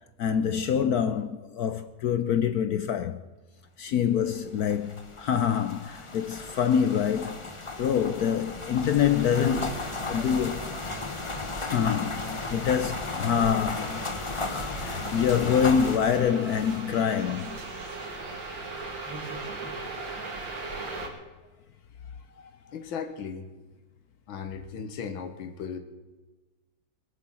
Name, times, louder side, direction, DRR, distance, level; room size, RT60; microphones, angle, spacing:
voice 1, 0.2-3.2 3.8-7.4 7.8-10.7 11.6-17.6 22.4-22.5, left 8 dB, 65° left, 1.0 m, -26 dB
sound 1, 4.5-16.0, left 3 dB, 25° left, 0.7 m, -35 dB
sound 2, 9.1-21.1, right 3 dB, 70° right, 3.3 m, -39 dB
voice 2, 22.7-23.5 24.3-25.8, left 6 dB, 85° left, 2.0 m, -36 dB
21.0 x 8.8 x 7.4 m
omnidirectional pair, 2.1 m